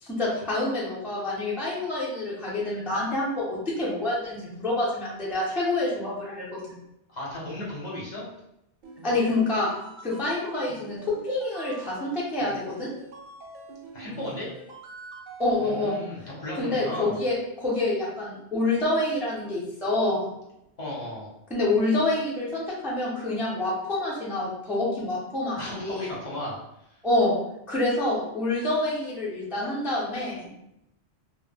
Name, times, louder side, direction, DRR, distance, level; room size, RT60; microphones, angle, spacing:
voice 1, 0.0-6.8 9.0-9.7 10.0-11.0 11.2-12.9 15.4-16.0 16.5-20.3 21.5-26.1 27.0-27.4 27.7-30.5, left 2 dB, 5° right, -7 dB, 0.3 m, -27 dB
voice 2, 7.1-8.3 13.9-14.5 15.6-17.2 20.8-21.3 25.6-26.6, left 1 dB, 45° left, -6 dB, 0.8 m, -35 dB
sound 1, 8.8-15.7, right 2 dB, 60° right, 0.6 m, -45 dB
2.1 x 2.1 x 3.3 m, 0.82 s
omnidirectional pair, 1.2 m